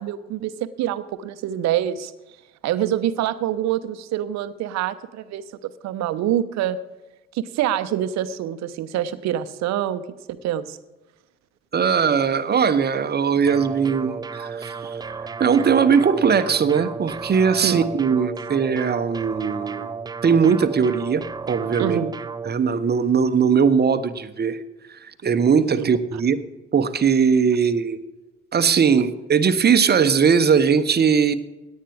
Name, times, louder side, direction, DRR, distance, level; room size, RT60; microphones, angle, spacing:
voice 1, 0.0-2.1 2.6-6.8 7.3-10.8 17.6-17.8 21.8-22.1 25.8-25.9, right 11 dB, 55° right, 13 dB, 0.9 m, -26 dB
voice 2, 11.7-19.9 20.2-22.0 22.4-24.6 24.9-26.4 26.7-28.0 28.5-31.3, right 6 dB, 30° right, 11 dB, 1.0 m, -20 dB
sound 1, 13.5-22.5, right 5 dB, 15° right, 0.4 m, -34 dB
17.5 x 10.5 x 3.5 m, 1.1 s
figure-of-eight pair, 50°, 32 cm